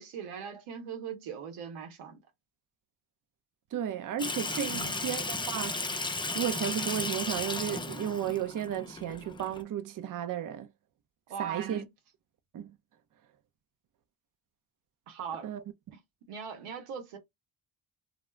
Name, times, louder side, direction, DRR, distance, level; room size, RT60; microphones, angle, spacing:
voice 1, 0.0-2.2 4.7-4.9 11.3-11.9 15.1-15.5 15.9-16.0 16.3-17.2, right 7 dB, 90° right, 0.8 m, -40 dB
voice 2, 3.7-5.8 6.3-10.7 11.4-11.8 12.5-12.8 15.4-15.6, right 9 dB, 40° right, 0.5 m, -34 dB
Water tap faucet / Sink (filling or washing), 4.2-9.6, left 3 dB, 10° left, 0.4 m, -35 dB
2.3 x 2.0 x 3.1 m
supercardioid pair, 60°, 50 cm